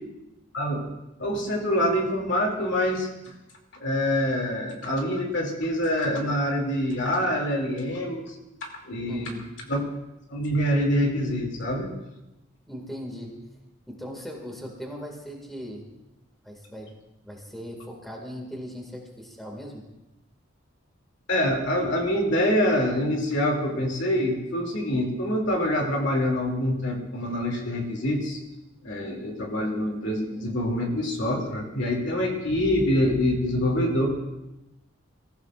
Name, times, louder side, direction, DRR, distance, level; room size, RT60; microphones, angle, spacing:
voice 1, 0.5-0.9 1.2-3.3 3.8-8.3 8.6-9.4 9.7-9.8 10.3-11.9 21.3-28.4 28.8-34.1, left 1 dB, 60° left, 1 dB, 2.8 m, -25 dB
voice 2, 9.1-9.4 12.7-13.4 13.9-15.9 16.4-16.9 17.2-19.9, equal, ahead, 0 dB, 2.2 m, -39 dB
24.5 x 15.0 x 2.5 m, 0.96 s
head